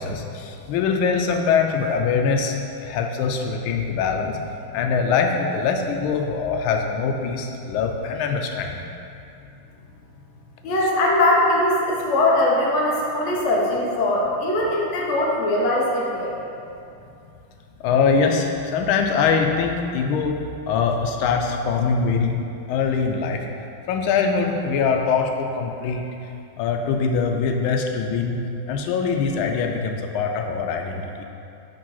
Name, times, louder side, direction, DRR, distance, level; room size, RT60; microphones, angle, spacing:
voice 1, 0.0-4.4 4.7-8.8 17.8-20.3 20.7-22.3 22.7-23.4 23.9-26.1 26.6-28.4 28.7-31.3, left 5 dB, 85° left, 3 dB, 1.4 m, -23 dB
voice 2, 10.6-16.3, left 1 dB, 50° left, -3 dB, 0.9 m, -21 dB
5.2 x 3.8 x 5.5 m, 2.6 s
omnidirectional pair, 2.2 m